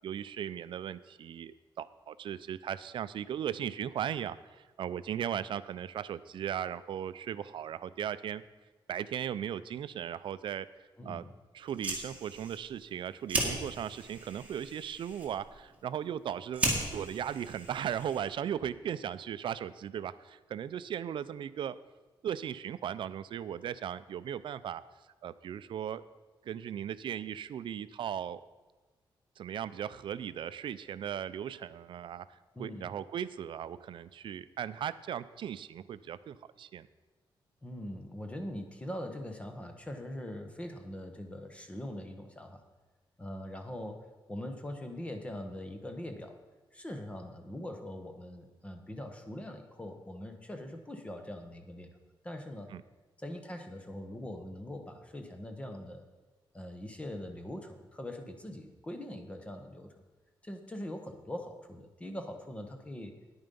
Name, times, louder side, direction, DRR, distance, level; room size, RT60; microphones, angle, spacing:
voice 1, 0.0-8.4 8.9-10.7 11.0-11.3 11.5-21.8 22.2-24.8 25.2-26.0 26.4-28.4 29.4-36.9 52.7-52.8, right 9 dB, 65° right, 14 dB, 0.4 m, -37 dB
voice 2, 11.0-11.3 32.5-32.9 37.6-42.6 43.2-46.4 46.7-51.9 52.2-52.7 53.2-56.0 56.5-59.9 60.4-63.1, left 1 dB, 15° left, 5 dB, 0.9 m, -42 dB
Fire, 11.6-18.5, right 2 dB, 15° right, 1.9 m, -37 dB
9.8 x 9.2 x 5.3 m, 1.2 s
wide cardioid pair, 170°, 9 cm